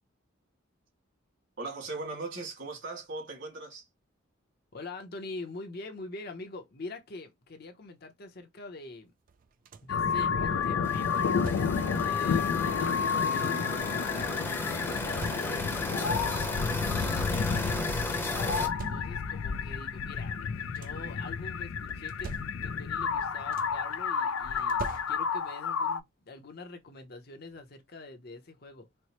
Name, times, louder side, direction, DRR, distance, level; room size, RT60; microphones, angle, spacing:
voice 1, 1.6-3.9 16.6-16.9, right 3 dB, 60° right, 2.0 m, -39 dB
voice 2, 4.7-9.1 9.8-11.4 12.0-16.2 16.9-22.3 22.6-24.8 25.1-28.9, left 3 dB, 50° left, 0.8 m, -45 dB
sound 1, 9.3-10.1 11.0-12.0 12.9-13.8 14.7-15.9 16.5-16.6 16.8-17.4 18.3-19.5 20.4-21.2 21.9-22.9 23.2-23.9 24.6-25.6 26.9-27.0 27.5-27.7, right 4 dB, 45° right, 0.4 m, -46 dB
sound 2, 9.9-26.0, left 6 dB, 90° left, 0.4 m, -30 dB
sound 3, 10.8-18.7, left 1 dB, 10° left, 0.7 m, -36 dB
4.4 x 2.1 x 2.9 m
head